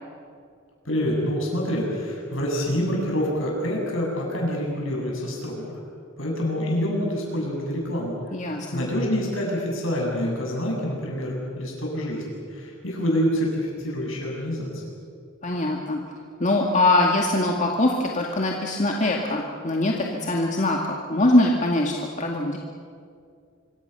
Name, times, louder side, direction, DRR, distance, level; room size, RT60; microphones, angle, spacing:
voice 1, 0.8-5.7 6.2-8.1 8.7-14.8, equal, 70° left, -1 dB, 8.0 m, -26 dB
voice 2, 8.3-8.9 15.4-16.0 16.4-22.6, left 2 dB, 35° left, 0 dB, 2.1 m, -22 dB
26.0 x 25.0 x 6.9 m, 2.3 s
head